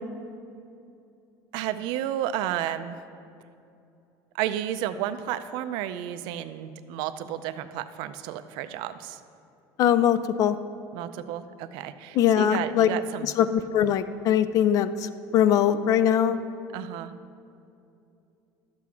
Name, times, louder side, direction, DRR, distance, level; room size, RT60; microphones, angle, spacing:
voice 1, 1.5-3.0 4.3-9.2 10.9-13.3 16.7-17.1, right 11 dB, 70° right, 11 dB, 0.4 m, -32 dB
voice 2, 9.8-10.6 12.2-12.9 13.2-16.4, left 10 dB, 45° left, 13 dB, 0.4 m, -22 dB
12.0 x 7.6 x 3.6 m, 2.6 s
cardioid pair, 155°, 8 cm